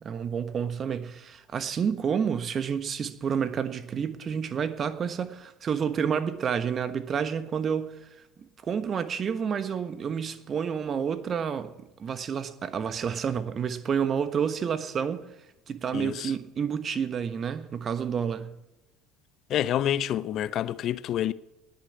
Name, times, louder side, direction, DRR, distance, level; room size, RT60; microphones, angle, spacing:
voice 1, 0.0-8.1 8.6-11.7 12.0-15.3 15.7-18.6, right 7 dB, 35° right, 1.2 m, -29 dB
voice 2, 15.9-16.3 19.5-21.3, left 11 dB, 45° left, 0.6 m, -28 dB
19.5 x 6.8 x 8.3 m
figure-of-eight pair, 65°, 0 cm